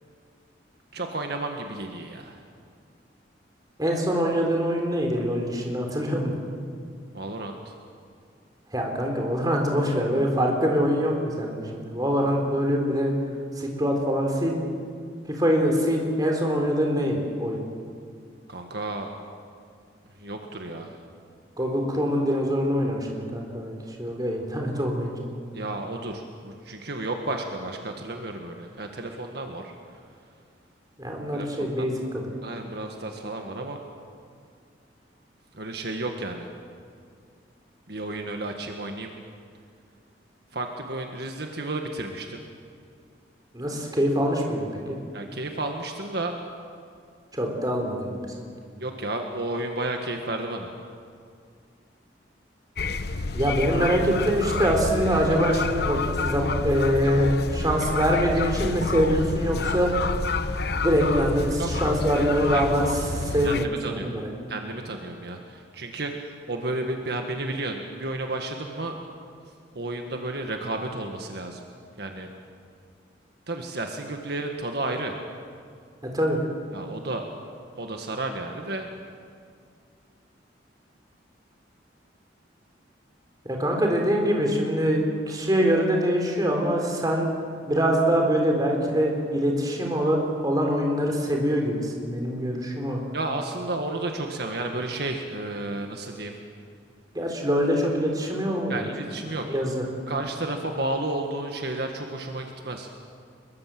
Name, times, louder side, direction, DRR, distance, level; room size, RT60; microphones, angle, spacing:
voice 1, 0.9-2.4 7.1-7.7 18.5-19.1 20.2-21.0 25.5-29.7 31.3-31.7 32.4-33.8 35.5-36.5 37.9-39.1 40.5-42.4 45.1-46.4 48.8-50.7 61.6-62.2 62.5-62.6 63.4-63.5 63.8-64.1 64.5-69.0 69.8-71.7 72.0-72.3 73.5-75.1 76.7-77.3 77.8-78.9 93.1-96.3 98.7-99.5 100.1-102.9, right 2 dB, 60° right, 3 dB, 1.7 m, -32 dB
voice 2, 3.8-6.4 8.7-13.1 13.6-14.6 15.3-17.6 21.6-25.2 31.0-32.3 43.5-45.0 47.3-48.2 53.3-59.9 60.8-64.3 76.1-76.4 83.4-87.3 87.7-93.0 97.1-98.9 99.5-99.8, equal, 20° right, 1 dB, 3.9 m, -24 dB
sound 1, 52.8-63.7, left 3 dB, 60° left, 0.9 m, -29 dB
24.5 x 22.5 x 7.8 m, 2.2 s
head